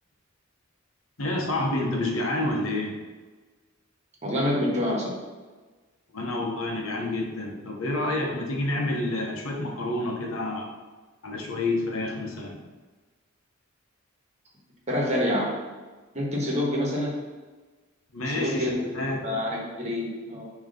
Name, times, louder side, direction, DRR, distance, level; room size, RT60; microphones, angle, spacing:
voice 1, 1.2-3.0 6.1-10.7 11.2-12.6 18.1-19.2, left 2 dB, 80° left, 0 dB, 1.1 m, -28 dB
voice 2, 4.2-5.1 14.9-15.6 16.1-17.1 18.3-18.8 19.2-20.4, left 1 dB, 35° right, -3 dB, 1.5 m, -27 dB
6.1 x 3.2 x 5.2 m, 1.3 s
head